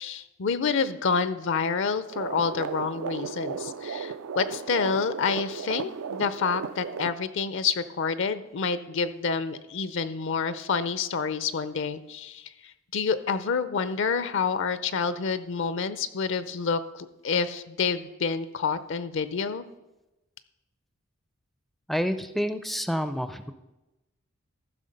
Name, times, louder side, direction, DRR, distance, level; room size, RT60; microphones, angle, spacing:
voice 1, 0.0-19.6, left 5 dB, 60° left, 14 dB, 0.5 m, -28 dB
sound 1, 2.1-7.1, right 6 dB, 75° right, 0.4 m, -35 dB
voice 2, 21.9-23.5, equal, ahead, 10 dB, 0.4 m, -28 dB
14.0 x 6.2 x 5.2 m, 1.0 s
head